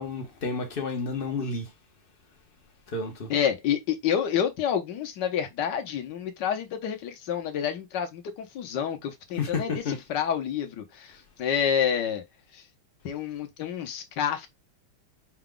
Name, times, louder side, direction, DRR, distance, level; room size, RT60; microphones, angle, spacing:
voice 1, 0.0-1.7 2.9-3.3 9.4-10.0, left 4 dB, 45° left, 0.7 m, -31 dB
voice 2, 3.3-12.2 12.5-12.7 13.0-14.5, left 8 dB, 60° left, 1.3 m, -28 dB
5.8 x 2.3 x 3.8 m
omnidirectional pair, 2.4 m